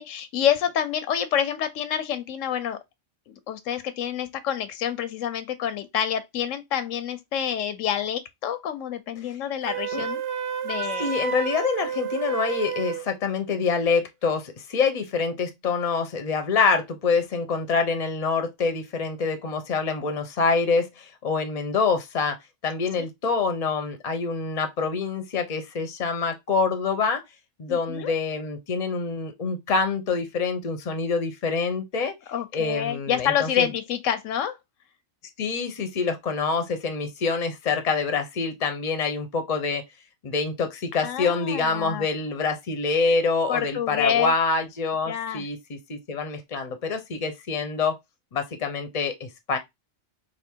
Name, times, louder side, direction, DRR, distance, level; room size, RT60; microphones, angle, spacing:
voice 1, 0.0-2.8 3.3-10.2 10.6-11.1 27.7-28.1 32.3-34.6 41.0-42.1 43.5-44.3 45.1-45.5, left 9 dB, 85° left, 1.0 m, -27 dB
Wind instrument woodwind instrument, 9.6-13.1, right 8 dB, 60° right, 0.8 m, -30 dB
voice 2, 10.8-22.4 22.6-27.2 27.6-32.1 32.5-33.7 35.4-39.8 40.2-48.0 48.3-49.6, left 4 dB, 35° left, 0.7 m, -26 dB
3.4 x 2.7 x 4.4 m
omnidirectional pair, 1.3 m